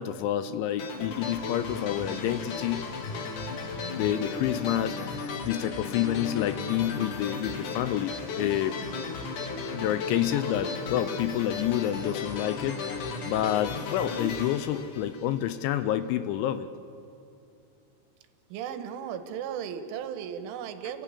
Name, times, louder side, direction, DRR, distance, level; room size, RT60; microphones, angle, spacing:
voice 1, 0.0-2.9 4.0-8.8 9.7-16.7, left 11 dB, 80° left, 12 dB, 2.8 m, -29 dB
sound 1, 0.8-15.6, left 4 dB, 60° left, 2.2 m, -35 dB
voice 2, 18.5-21.0, right 8 dB, 80° right, 8 dB, 3.5 m, -36 dB
28.5 x 17.0 x 8.4 m, 2.6 s
omnidirectional pair, 5.7 m